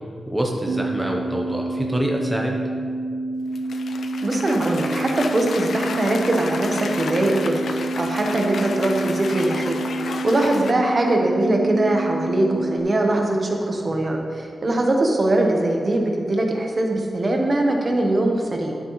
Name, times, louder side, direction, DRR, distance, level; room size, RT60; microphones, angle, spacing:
voice 1, 0.3-2.6, equal, 5° right, -1 dB, 0.7 m, -25 dB
sound 1, 0.7-12.8, right 2 dB, 80° right, 0.5 m, -28 dB
Cheering / Applause, 3.5-10.7, left 4 dB, 85° left, 0.4 m, -32 dB
voice 2, 4.2-9.8 10.2-18.7, right 1 dB, 35° right, 1 dB, 0.9 m, -21 dB
11.5 x 7.5 x 3.1 m, 2.2 s
wide cardioid pair, 160°, 0 cm